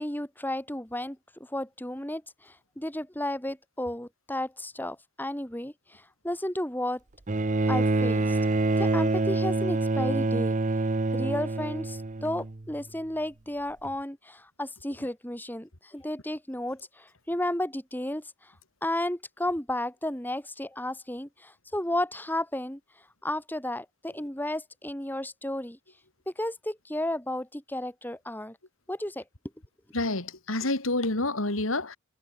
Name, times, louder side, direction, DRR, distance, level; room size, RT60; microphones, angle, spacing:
voice 1, 0.0-7.0 7.7-8.4 8.8-10.6 11.1-18.5 18.8-22.8 23.2-25.8 26.3-28.6 28.9-29.2, left 1 dB, 10° left, 2.9 m, -33 dB
Bowed string instrument, 7.3-12.7 13.8-13.9, right 2 dB, 35° right, 0.8 m, -26 dB
voice 2, 29.9-32.0, left 2 dB, 75° left, 3.3 m, -28 dB
head